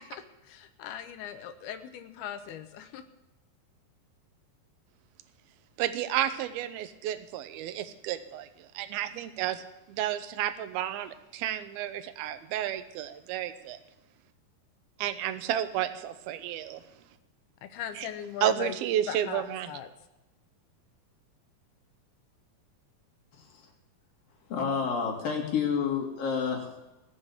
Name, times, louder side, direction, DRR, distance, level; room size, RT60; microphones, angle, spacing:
voice 1, 0.4-3.0 17.6-18.8 19.1-19.9, left 9 dB, 90° left, 8 dB, 3.0 m, -39 dB
voice 2, 5.8-9.6 9.9-13.8 15.0-16.8 18.0-18.1 18.4-19.7, right 11 dB, 85° right, 11 dB, 2.8 m, -31 dB
voice 3, 24.5-26.9, left 6 dB, 65° left, -1 dB, 4.6 m, -29 dB
20.0 x 7.4 x 8.2 m, 0.97 s
omnidirectional pair, 4.3 m